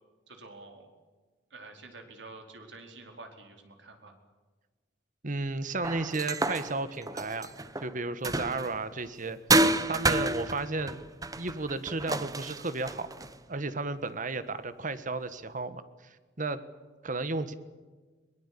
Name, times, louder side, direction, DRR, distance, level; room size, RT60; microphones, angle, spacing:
voice 1, 0.3-0.9 1.5-4.2, right 3 dB, 80° right, 4 dB, 4.5 m, -48 dB
voice 2, 5.2-7.5 7.8-9.4 9.9-11.0 11.4-13.1 13.5-16.6 17.0-17.5, right 3 dB, 45° right, 13 dB, 1.5 m, -33 dB
sound 1, 5.8-8.9 9.5-13.4, right 2 dB, 20° right, 1.1 m, -29 dB
22.5 x 20.5 x 8.6 m, 1.3 s
head